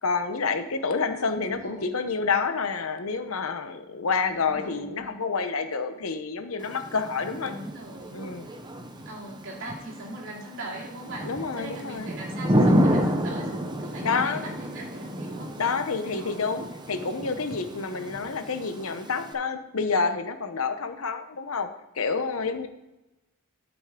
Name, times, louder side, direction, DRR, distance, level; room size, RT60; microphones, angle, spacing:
voice 1, 0.0-7.5 8.1-8.5 11.2-12.1 14.0-14.4 15.6-21.7 21.9-22.7, left 4 dB, 75° left, 8 dB, 0.9 m, -28 dB
voice 2, 1.2-1.9 4.2-5.1 7.4-8.2 9.0-15.5 16.0-16.3, right 1 dB, 60° right, -3 dB, 2.8 m, -41 dB
Thunder / Rain, 6.6-19.3, equal, 20° right, 0.8 m, -30 dB
12.0 x 6.0 x 3.8 m, 0.96 s
head